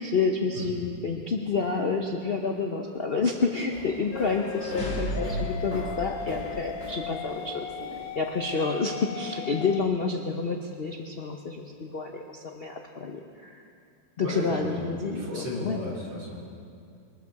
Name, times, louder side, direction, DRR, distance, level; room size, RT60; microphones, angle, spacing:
voice 1, 0.0-7.7 8.1-13.6 14.2-15.8, left 4 dB, 55° left, 2 dB, 0.6 m, -29 dB
voice 2, 0.6-0.9 14.2-16.4, left 1 dB, 70° right, -4 dB, 3.4 m, -34 dB
sound 1, 3.6-8.4, right 1 dB, 45° right, 4.8 m, -42 dB
sound 2, 3.9-7.1, equal, 35° left, 3.3 m, -35 dB
sound 3, 4.1-9.8, left 10 dB, 75° left, 1.2 m, -38 dB
22.5 x 13.0 x 4.7 m, 2.4 s
omnidirectional pair, 2.1 m